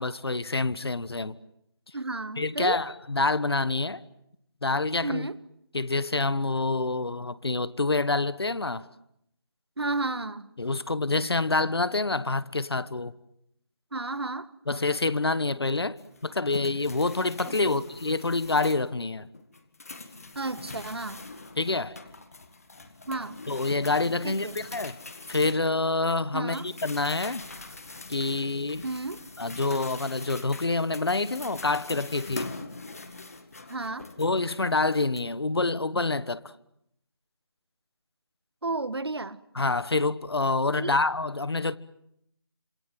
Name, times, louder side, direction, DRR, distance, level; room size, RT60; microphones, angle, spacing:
voice 1, 0.0-1.4 2.4-4.0 4.6-5.3 5.7-8.9 10.6-13.1 14.7-19.3 21.6-22.0 23.5-24.9 25.3-27.4 28.1-28.9 29.4-32.5 34.2-36.5 39.5-41.7, left 3 dB, 75° left, 1.4 m, -27 dB
voice 2, 1.9-2.8 5.0-5.4 9.8-10.5 13.9-14.5 17.4-17.8 20.3-21.3 23.1-23.4 24.2-24.6 26.3-26.7 28.8-29.2 33.7-34.1 38.6-39.4 40.8-41.0, right 3 dB, 75° right, 1.6 m, -32 dB
sound 1, 16.0-18.9 19.3-26.1 26.5-35.2, left 3 dB, 35° left, 1.8 m, -43 dB
27.0 x 26.5 x 7.7 m
figure-of-eight pair, 180°, 13 cm